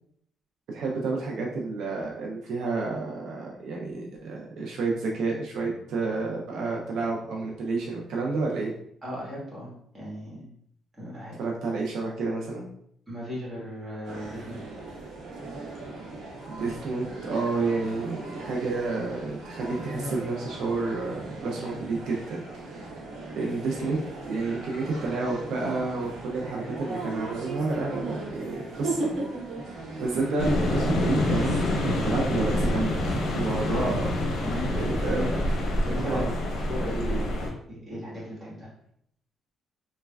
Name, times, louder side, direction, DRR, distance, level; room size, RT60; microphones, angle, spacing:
voice 1, 0.7-8.7 11.4-12.7 16.5-23.1 23.4-24.0 24.3-29.1 29.7-34.3 34.8-35.3 36.0-36.3, right 3 dB, 70° right, -2 dB, 0.4 m, -30 dB
voice 2, 9.0-10.4 11.0-11.4 13.1-14.6 34.4-34.7 35.2-35.4 35.8-37.2 37.7-38.7, equal, 20° right, -6 dB, 1.3 m, -36 dB
sound 1, 14.0-31.8, right 2 dB, 90° right, 0.9 m, -37 dB
sound 2, 30.4-37.5, left 1 dB, 65° left, 0.6 m, -27 dB
3.2 x 2.1 x 2.2 m, 0.70 s
cardioid pair, 120°, 0 cm